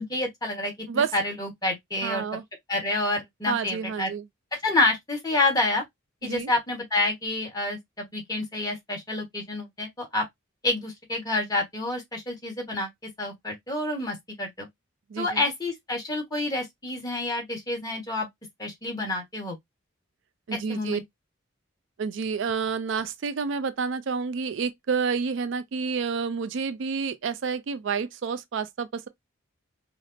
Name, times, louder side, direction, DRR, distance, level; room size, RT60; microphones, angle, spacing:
voice 1, 0.0-2.3 2.7-4.1 4.5-5.8 6.2-10.2 10.6-12.9 13.2-14.7 15.2-18.3 18.6-19.6 20.5-21.0, left 2 dB, 20° left, 1.2 m, -28 dB
voice 2, 2.0-2.4 3.5-4.2 6.2-6.5 15.1-15.4 20.5-21.0 22.0-29.1, right 5 dB, 60° right, 0.4 m, -29 dB
4.9 x 2.0 x 2.6 m
head